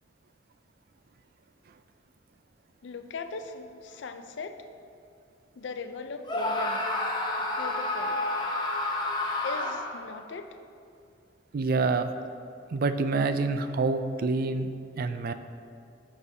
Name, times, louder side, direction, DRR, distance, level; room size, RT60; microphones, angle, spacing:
voice 1, 2.8-4.7 5.6-6.8 7.6-8.3 9.4-10.6, left 4 dB, 75° left, 8 dB, 0.5 m, -39 dB
Screaming, 6.2-10.0, left 2 dB, 25° left, 0.8 m, -30 dB
voice 2, 11.5-12.1 12.7-14.7 15.0-15.3, right 3 dB, 55° right, 9 dB, 0.4 m, -27 dB
13.0 x 4.9 x 2.7 m, 2.4 s
head